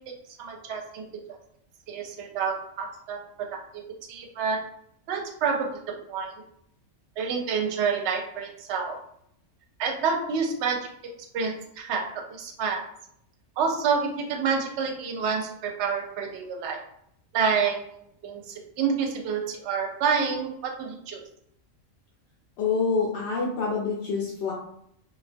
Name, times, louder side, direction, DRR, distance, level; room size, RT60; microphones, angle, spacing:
voice 1, 0.4-1.0 1.9-3.8 4.1-4.6 5.1-6.3 7.2-9.0 9.8-12.8 13.6-16.8 17.3-17.8 18.2-21.2, right 5 dB, 70° right, 2 dB, 0.8 m, -28 dB
voice 2, 22.6-24.5, left 4 dB, 65° left, -3 dB, 0.8 m, -26 dB
2.2 x 2.2 x 2.5 m, 0.69 s
omnidirectional pair, 1.3 m